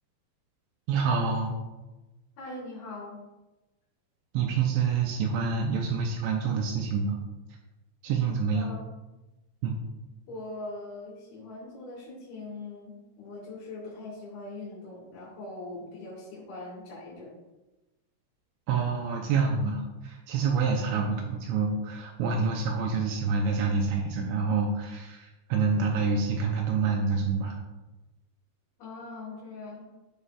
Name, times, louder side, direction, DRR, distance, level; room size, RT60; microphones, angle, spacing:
voice 1, 0.9-1.6 4.3-7.2 8.0-8.7 9.6-9.8 18.7-27.6, right 5 dB, 85° right, 0 dB, 2.8 m, -27 dB
voice 2, 2.4-3.2 8.5-8.9 10.3-17.3 28.8-29.8, left 2 dB, 60° left, -10 dB, 3.4 m, -41 dB
9.9 x 5.6 x 2.4 m, 1.1 s
omnidirectional pair, 5.5 m